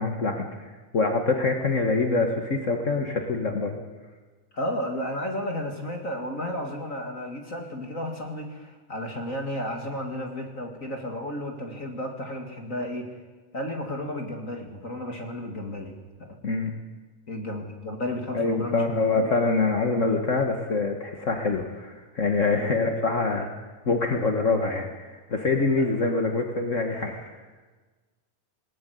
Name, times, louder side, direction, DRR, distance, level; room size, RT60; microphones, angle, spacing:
voice 1, 0.0-3.8 16.4-16.7 18.3-23.5 23.8-27.3, left 3 dB, 45° left, 4 dB, 0.9 m, -25 dB
voice 2, 4.5-13.1 13.5-16.4 17.3-19.3 22.6-22.7 25.8-25.9, left 1 dB, 30° left, 3 dB, 2.0 m, -33 dB
20.0 x 18.5 x 9.4 m, 1.3 s
omnidirectional pair, 3.8 m